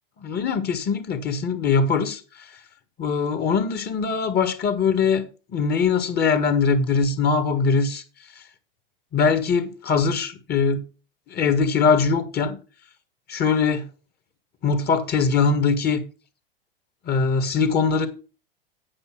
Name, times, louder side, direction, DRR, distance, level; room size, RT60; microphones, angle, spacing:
voice 1, 0.2-2.5 3.0-5.2 5.5-8.0 9.1-10.8 11.3-12.6 13.3-13.9 14.6-16.0 17.1-18.1, left 5 dB, 35° left, 1.7 m, -22 dB
8.6 x 5.7 x 6.1 m
hypercardioid pair, 100°, 30 cm